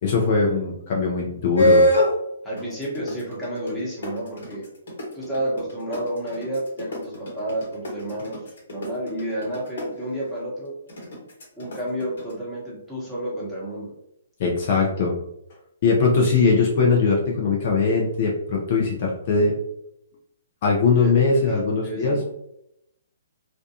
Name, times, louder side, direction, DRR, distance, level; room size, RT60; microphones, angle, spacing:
voice 1, 0.0-1.9 14.4-15.1 15.8-19.5 20.6-22.2, left 4 dB, 45° left, -2 dB, 0.6 m, -20 dB
sound 1, 1.6-2.1 2.6-9.8 10.9-12.3, equal, 65° left, 1.2 m, -22 dB
voice 2, 2.4-4.7 5.1-10.7 11.6-13.9 21.0-22.2, right 1 dB, 5° left, -8 dB, 1.0 m, -31 dB
2.6 x 2.2 x 2.7 m, 0.80 s
hypercardioid pair, 135°, 0 cm